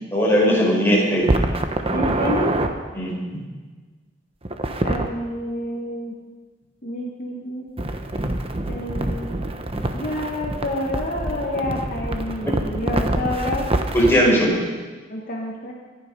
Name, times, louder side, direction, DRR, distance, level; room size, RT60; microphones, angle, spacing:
voice 1, 0.1-1.3 2.9-3.1 9.7-9.8 13.9-14.5, equal, 15° left, -4 dB, 5.0 m, -18 dB
sound 1, 1.2-2.7 4.4-5.1 7.8-14.2, right 1 dB, 30° right, 1.1 m, -25 dB
voice 2, 1.9-2.6 4.8-6.1 6.8-7.6 8.7-9.3 9.9-13.7 15.1-15.7, left 1 dB, 50° left, -1 dB, 1.6 m, -28 dB
24.5 x 10.5 x 5.5 m, 1.3 s
head